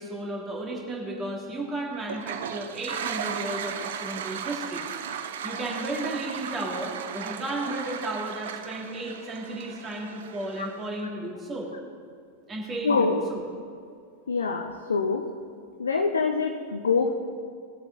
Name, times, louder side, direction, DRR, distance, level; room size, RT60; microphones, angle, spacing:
voice 1, 0.0-4.8 5.4-11.7 12.5-13.4, right 1 dB, 20° right, -2 dB, 2.8 m, -34 dB
Toilet flush, 2.0-10.9, right 8 dB, 60° right, 0.7 m, -36 dB
voice 2, 12.8-13.2 14.3-15.2 15.8-17.1, left 5 dB, 70° left, 5 dB, 0.7 m, -25 dB
20.0 x 8.0 x 4.0 m, 2.2 s
figure-of-eight pair, 90°, 0 cm